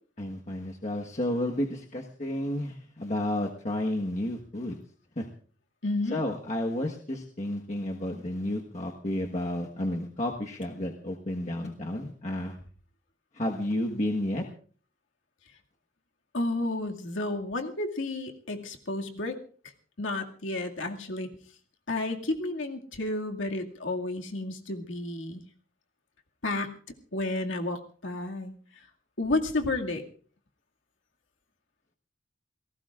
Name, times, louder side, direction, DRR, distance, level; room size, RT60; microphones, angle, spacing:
voice 1, 0.2-4.8 5.2-5.3 6.1-12.6 13.3-14.4, left 1 dB, 40° left, 0 dB, 1.4 m, -31 dB
voice 2, 5.8-6.2 16.3-19.4 20.0-21.3 21.9-25.4 26.4-26.7 27.1-28.5 29.2-30.0, left 2 dB, 90° left, 2 dB, 2.2 m, -31 dB
28.0 x 18.5 x 2.5 m, 0.43 s
head